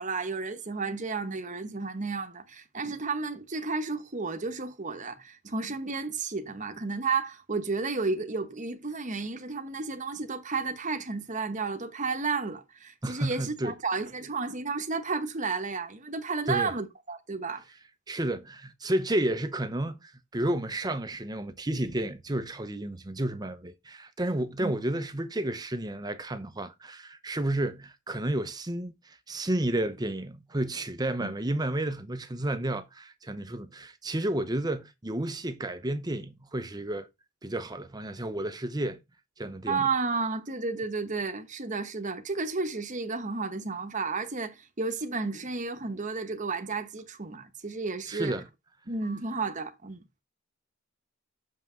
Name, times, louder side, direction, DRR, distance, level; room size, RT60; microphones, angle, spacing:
voice 1, 0.0-17.6 24.6-24.8 31.2-31.3 39.7-48.4 48.9-50.0, right 4 dB, 35° right, 1.1 m, -32 dB
voice 2, 13.0-13.7 16.5-16.7 18.1-37.1 37.4-39.0 39.4-39.8 48.1-48.5, right 1 dB, 20° right, 0.8 m, -31 dB
6.6 x 5.9 x 4.5 m
head